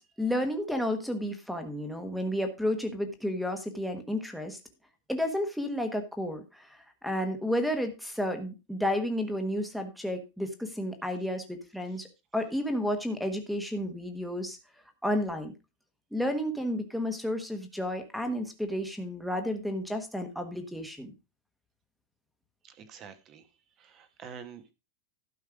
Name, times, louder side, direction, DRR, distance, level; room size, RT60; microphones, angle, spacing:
voice 1, 0.2-4.6 5.1-12.1 12.3-14.6 15.0-15.5 16.1-21.1, left 1 dB, ahead, 8 dB, 1.2 m, -31 dB
voice 2, 22.6-23.5 23.8-24.7, right 7 dB, 25° right, 10 dB, 1.2 m, -47 dB
12.0 x 5.4 x 5.0 m, 0.27 s
supercardioid pair, 175°, 0 cm